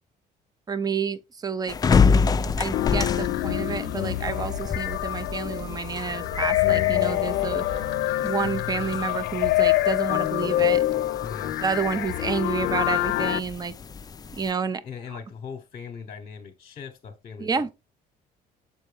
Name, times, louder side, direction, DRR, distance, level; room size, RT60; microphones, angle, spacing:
voice 1, 0.7-1.8 2.6-7.7 8.2-10.9 11.6-13.7 14.3-14.8 17.4-17.7, right 5 dB, 25° right, 0.6 m, -29 dB
sound 1, 1.7-14.5, left 5 dB, 25° left, 0.4 m, -29 dB
sound 2, 2.4-8.0, left 2 dB, 75° right, 3.1 m, -41 dB
sound 3, 2.7-13.4, left 16 dB, 75° left, 0.5 m, -26 dB
voice 2, 11.2-11.6 14.8-17.7, left 6 dB, 45° left, 1.0 m, -39 dB
7.3 x 4.4 x 3.4 m
cardioid pair, 110°, 17 cm